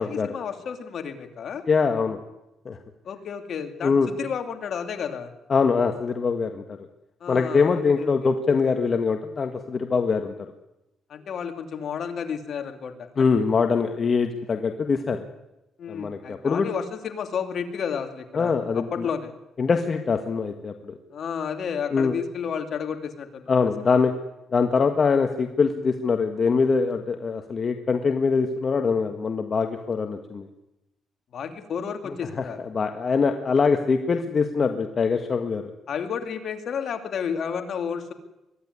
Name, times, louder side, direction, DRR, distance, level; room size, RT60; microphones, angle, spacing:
voice 1, 0.0-1.7 3.0-5.3 7.2-8.3 11.1-13.3 15.8-19.4 21.1-24.0 31.3-32.6 35.9-38.1, left 7 dB, 60° left, 6 dB, 2.8 m, -32 dB
voice 2, 1.7-2.2 2.6-2.8 3.8-4.1 5.5-6.6 7.3-10.3 13.2-15.2 15.9-16.7 18.3-19.1 19.6-20.9 21.9-22.1 23.5-24.1 24.5-30.5 32.1-32.4 32.7-35.6, left 5 dB, 40° left, 6 dB, 1.6 m, -23 dB
23.0 x 13.5 x 9.8 m, 0.94 s
cardioid pair, 90°, 0 cm